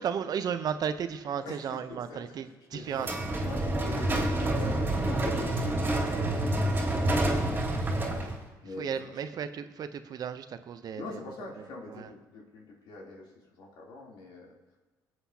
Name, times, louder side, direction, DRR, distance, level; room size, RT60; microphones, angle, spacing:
voice 1, 0.0-3.1 8.8-11.2 11.9-12.1, right 7 dB, 55° right, 10 dB, 0.7 m, -34 dB
voice 2, 1.4-3.1 3.4-4.2 4.5-8.3 8.6-9.3 10.9-14.6, left 2 dB, 75° left, -2 dB, 3.2 m, -44 dB
sound 1, 3.0-8.4, right 1 dB, 25° right, 2.7 m, -28 dB
18.5 x 8.0 x 2.8 m, 1.2 s
supercardioid pair, 80°, 8 cm